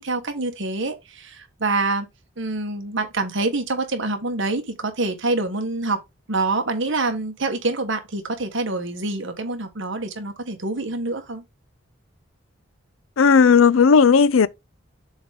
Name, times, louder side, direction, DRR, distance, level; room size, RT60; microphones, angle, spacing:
voice 1, 0.0-2.1 2.4-6.0 6.3-11.4, right 3 dB, 70° right, 1.4 m, -26 dB
voice 2, 13.2-14.5, left 5 dB, 80° left, 0.5 m, -14 dB
7.1 x 3.7 x 3.7 m
head